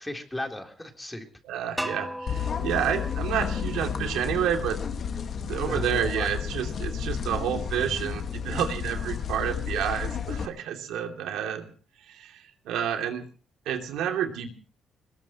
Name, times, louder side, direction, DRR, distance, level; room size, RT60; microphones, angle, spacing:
voice 1, 0.0-1.3 5.6-6.3, left 1 dB, 10° left, 3 dB, 3.6 m, -36 dB
voice 2, 1.4-4.8 5.4-11.7 12.0-13.3 13.6-14.5, right 9 dB, 85° right, 4 dB, 2.7 m, -29 dB
sound 1, 1.8-4.7, equal, 5° right, 1.0 m, -38 dB
sound 2, 2.3-10.5, left 7 dB, 55° left, 1.7 m, -32 dB
22.5 x 20.0 x 3.0 m, 0.40 s
cardioid pair, 90°, 0 cm